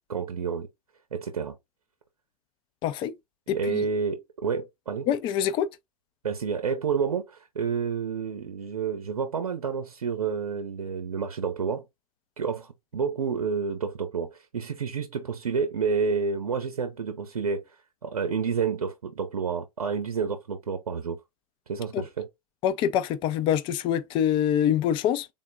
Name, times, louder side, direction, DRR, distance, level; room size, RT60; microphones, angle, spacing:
voice 1, 0.1-0.7 1.1-1.6 3.5-5.1 6.2-11.8 12.4-17.6 18.0-21.2 21.7-22.3, right 6 dB, 75° right, 0.7 m, -29 dB
voice 2, 2.8-3.1 3.5-3.8 5.1-5.7 21.9-22.0 22.6-25.3, left 9 dB, 25° left, 0.4 m, -25 dB
3.7 x 2.1 x 3.7 m
figure-of-eight pair, 100°, 19 cm